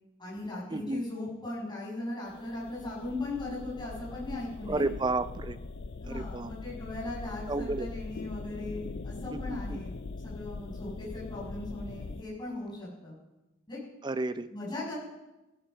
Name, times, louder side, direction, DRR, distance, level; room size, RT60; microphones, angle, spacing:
voice 1, 0.2-4.8 6.0-13.1 13.7-13.8 14.5-14.9, left 2 dB, 20° left, -6 dB, 6.4 m, -38 dB
voice 2, 0.7-1.1 4.7-5.6 6.0-6.5 7.5-7.9 9.3-9.8 14.0-14.5, right 2 dB, 20° right, 13 dB, 0.4 m, -32 dB
sound 1, 2.3-12.2, left 3 dB, 50° left, 0.5 m, -41 dB
16.5 x 11.5 x 5.6 m, 1.0 s
head